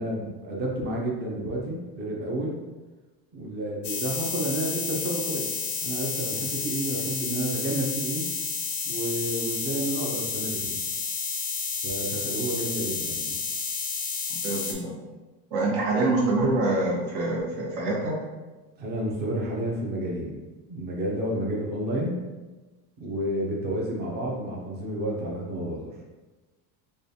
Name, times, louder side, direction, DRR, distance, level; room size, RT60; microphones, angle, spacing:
voice 1, 0.0-2.6 3.3-5.5 5.8-8.3 8.8-10.8 11.8-13.4 18.8-20.4 20.7-22.2 23.0-25.8, right 1 dB, 25° right, -2 dB, 0.5 m, -30 dB
sound 1, 3.8-14.7, left 5 dB, 30° left, 0.4 m, -31 dB
voice 2, 14.3-14.9 15.5-18.1, right 2 dB, 70° right, -3 dB, 1.2 m, -25 dB
4.9 x 2.3 x 2.7 m, 1.2 s
cardioid pair, 170°, 42 cm